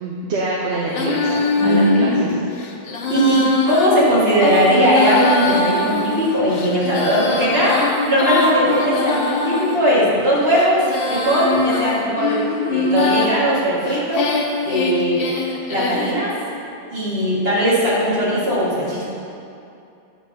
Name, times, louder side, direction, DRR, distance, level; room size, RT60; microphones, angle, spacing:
voice 1, 0.0-2.4, right 2 dB, 80° right, -3 dB, 1.0 m, -26 dB
Female singing, 0.9-9.8 10.4-13.3 13.9-16.2, left 3 dB, 65° left, 0.9 m, -22 dB
voice 2, 1.6-2.4 3.1-7.8 8.1-12.4 12.7-14.3 14.6-15.2 15.7-16.3 16.9-19.1, equal, 65° right, -8 dB, 2.1 m, -18 dB
8.8 x 3.4 x 5.6 m, 2.6 s
omnidirectional pair, 1.1 m